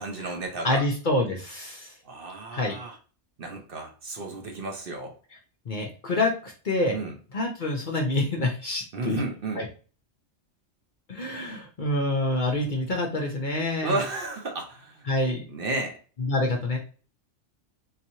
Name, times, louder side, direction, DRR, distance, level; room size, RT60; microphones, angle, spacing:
voice 1, 0.0-0.8 2.0-3.0 3.4-5.1 6.9-7.2 8.9-9.7 13.8-15.1 15.5-16.0, right 2 dB, 55° right, 3 dB, 0.8 m, -32 dB
voice 2, 0.6-1.9 2.5-2.8 5.7-7.0 7.3-9.2 9.6-9.7 11.1-13.9 15.1-15.4 16.3-16.8, left 2 dB, 50° left, 1 dB, 0.6 m, -27 dB
3.9 x 2.9 x 2.7 m, 0.37 s
omnidirectional pair, 1.3 m